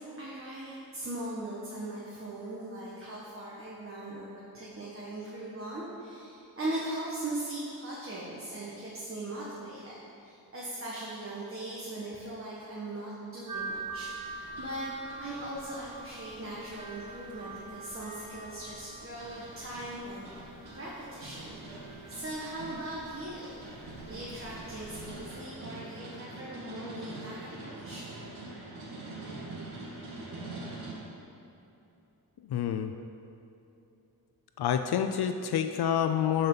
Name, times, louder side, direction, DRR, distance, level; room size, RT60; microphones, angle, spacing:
voice 1, 0.0-20.3 20.8-21.6 22.1-23.6 24.0-28.1, right 1 dB, 35° right, -7 dB, 1.6 m, -39 dB
sound 1, 13.5-25.4, right 3 dB, 50° right, 1.5 m, -45 dB
sound 2, 14.2-30.9, right 2 dB, 85° right, 1.7 m, -45 dB
voice 2, 32.5-32.9 34.6-36.5, left 9 dB, 80° left, 7 dB, 0.5 m, -28 dB
12.0 x 5.4 x 4.0 m, 2.9 s
cardioid pair, 80°, 38 cm